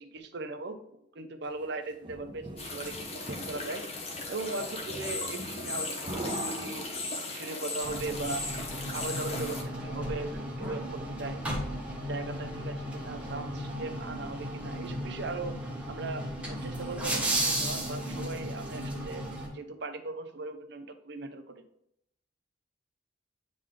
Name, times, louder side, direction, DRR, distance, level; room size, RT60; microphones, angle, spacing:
voice 1, 0.0-3.8 4.3-6.9 7.2-8.4 8.7-11.4 12.1-15.6 15.9-19.2 19.5-21.6, right 3 dB, 60° right, 8 dB, 0.7 m, -39 dB
sound 1, 1.6-7.5, right 1 dB, 25° right, 0.9 m, -42 dB
sound 2, 2.6-9.6, left 3 dB, 30° left, 1.0 m, -37 dB
sound 3, 7.8-19.5, right 1 dB, 5° right, 1.2 m, -35 dB
9.0 x 3.9 x 3.2 m, 0.75 s
head